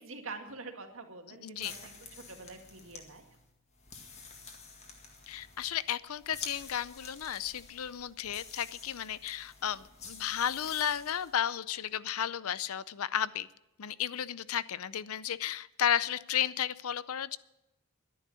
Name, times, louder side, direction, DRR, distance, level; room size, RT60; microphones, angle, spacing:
voice 1, 0.0-3.2, right 3 dB, 65° right, 4 dB, 2.0 m, -46 dB
voice 2, 1.3-1.8 5.3-13.5 13.8-17.4, left 9 dB, 80° left, 18 dB, 0.6 m, -33 dB
sound 1, 1.5-11.4, left 4 dB, 30° left, 1.9 m, -49 dB
12.0 x 10.5 x 7.0 m, 0.91 s
head